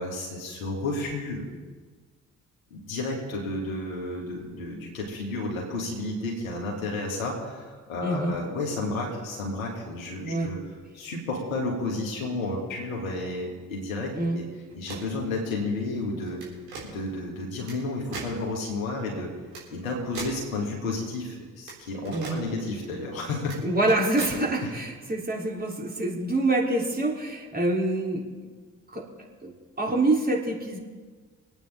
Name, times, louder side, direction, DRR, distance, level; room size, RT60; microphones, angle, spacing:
voice 1, 0.0-1.5 2.7-10.6 10.9-14.4 14.7-16.4 16.8-19.3 19.7-23.6 24.6-24.7, left 2 dB, 80° left, -1 dB, 2.5 m, -32 dB
voice 2, 8.0-8.3 10.2-10.5 14.1-14.4 22.1-22.4 23.6-28.3 28.9-29.1 29.4-29.5 29.8-30.8, right 2 dB, 20° right, -3 dB, 3.7 m, -26 dB
sound 1, 14.7-15.2 16.3-16.9 17.7-17.8 18.1-18.3 19.5-19.6 20.1-20.4 21.7-21.8 22.1-22.4 23.4-23.6 23.9-24.4, right 4 dB, 75° right, 3.4 m, -38 dB
25.0 x 9.1 x 3.8 m, 1.4 s
figure-of-eight pair, 40°, 40 cm